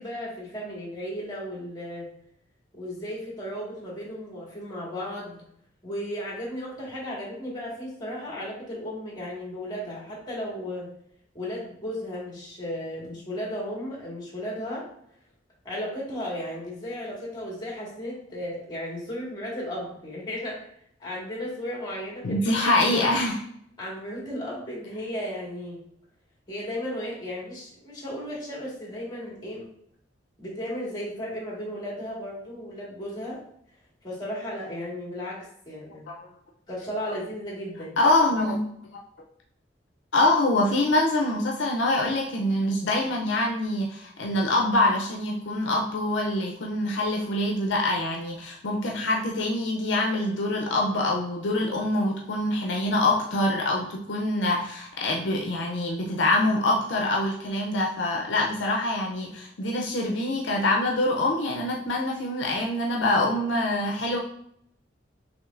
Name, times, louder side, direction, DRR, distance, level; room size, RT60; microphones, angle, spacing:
voice 1, 0.0-2.1 2.7-5.4 5.8-10.9 11.3-14.8 15.6-20.7 21.0-22.6 22.9-23.1 23.8-25.8 26.5-29.7 30.4-33.4 34.0-36.1 36.7-38.0, equal, 25° left, -4 dB, 1.7 m, -35 dB
voice 2, 22.2-23.4 36.1-36.2 38.0-38.6 38.9-39.0 40.1-64.2, left 1 dB, 70° left, 0 dB, 0.5 m, -25 dB
6.2 x 3.0 x 2.5 m, 0.70 s
head